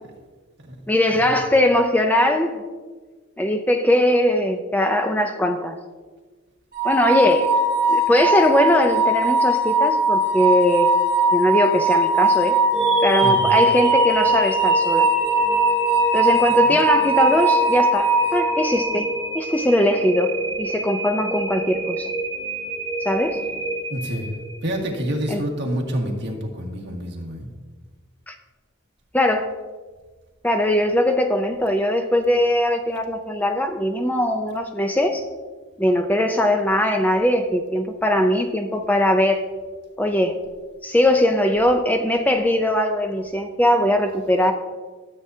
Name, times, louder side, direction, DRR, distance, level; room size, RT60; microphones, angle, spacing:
voice 1, 0.9-2.6 3.4-5.8 6.8-7.5 7.9-10.9 11.3-12.6 13.0-15.1 16.1-20.3 20.6-22.1 23.0-23.4 25.3-25.4 28.3-28.4 29.1-29.5 30.4-35.2 35.8-39.4 40.0-40.3 40.8-44.5, left 1 dB, 10° left, 5 dB, 0.4 m, -20 dB
sound 1, 6.7-19.0, right 2 dB, 40° right, 2.0 m, -20 dB
sound 2, 12.7-24.8, right 1 dB, 25° left, 2.2 m, -28 dB
voice 2, 23.9-24.3 24.6-27.5, equal, 55° right, -1 dB, 1.7 m, -28 dB
13.0 x 7.9 x 2.7 m, 1.4 s
head